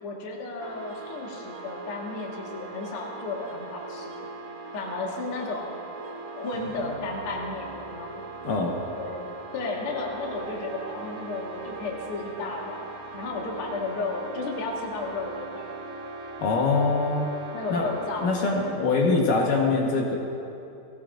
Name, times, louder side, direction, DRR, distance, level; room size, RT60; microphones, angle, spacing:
voice 1, 0.0-4.3 4.7-5.8 6.4-8.2 9.0-9.3 9.5-12.9 13.1-15.7 17.5-18.3 19.0-19.2, left 3 dB, 50° left, -2 dB, 2.0 m, -33 dB
sound 1, 0.6-18.8, right 4 dB, 70° right, 3.4 m, -40 dB
voice 2, 16.4-17.3 17.7-17.9 18.2-20.2, left 3 dB, 70° left, -1 dB, 2.7 m, -23 dB
20.0 x 17.0 x 2.5 m, 2.8 s
omnidirectional pair, 4.2 m